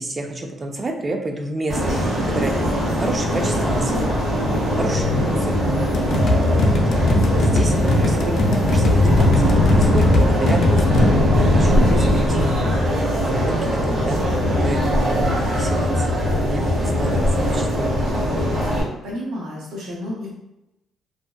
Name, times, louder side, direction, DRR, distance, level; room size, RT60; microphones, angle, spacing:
voice 1, 0.0-4.1 4.8-5.8 6.5-6.7 7.3-11.1 11.5-12.6 13.2-14.3 14.6-17.2 17.5-18.1, right 2 dB, 30° right, 3 dB, 0.4 m, -29 dB
sound 1, 1.7-18.8, left 1 dB, 65° right, 1.2 m, -19 dB
sound 2, 5.9-11.1, left 1 dB, 65° left, 0.3 m, -22 dB
voice 2, 16.9-17.4 19.0-20.3, left 1 dB, 85° right, -4 dB, 0.8 m, -32 dB
2.6 x 2.1 x 2.3 m, 0.91 s
cardioid pair, 90°, 0 cm